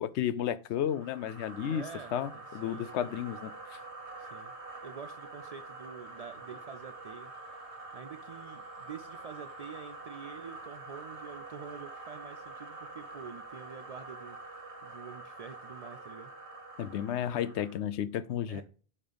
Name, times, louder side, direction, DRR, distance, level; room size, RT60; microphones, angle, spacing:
voice 1, 0.0-1.8 2.1-3.8 16.8-18.6, left 10 dB, 85° left, 0.9 m, -33 dB
sound 1, 0.8-17.8, right 3 dB, 80° right, 2.1 m, -46 dB
voice 2, 1.7-3.1 4.2-4.5 4.8-7.3 7.9-16.3 18.5-18.6, right 6 dB, 50° right, 0.5 m, -47 dB
8.8 x 4.3 x 5.2 m
omnidirectional pair, 1.1 m